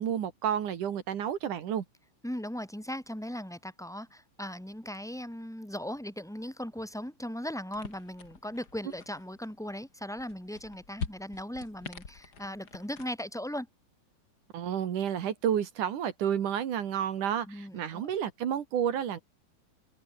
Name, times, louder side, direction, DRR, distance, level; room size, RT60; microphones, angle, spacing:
voice 1, 0.0-1.8 14.5-19.2, right 9 dB, 55° right, 2.7 m, -30 dB
voice 2, 2.2-13.7 17.5-18.1, equal, ahead, 5.5 m, -38 dB
sound 1, 7.7-13.1, left 5 dB, 65° left, 0.9 m, -45 dB
omnidirectional pair, 5.6 m